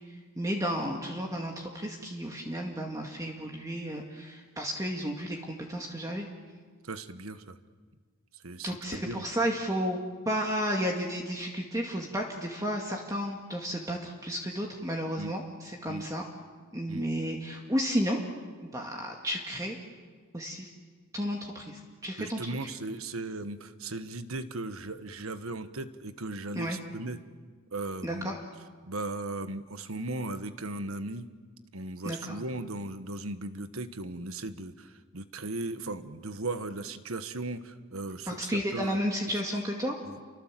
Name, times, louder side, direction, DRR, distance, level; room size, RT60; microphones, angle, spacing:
voice 1, 0.4-6.3 8.6-10.0 10.3-16.2 16.7-18.2 18.6-19.8 20.3-20.7 21.1-22.4 26.6-26.8 28.0-28.4 32.0-32.4 38.3-40.0, equal, 15° right, 0 dB, 2.1 m, -32 dB
voice 2, 6.8-7.6 8.4-9.2 15.2-15.3 15.9-16.1 16.9-17.1 22.2-27.2 27.7-28.4 28.8-31.3 31.7-39.0 40.0-40.2, right 2 dB, 80° right, 10 dB, 1.4 m, -37 dB
29.5 x 24.5 x 7.6 m, 1.5 s
head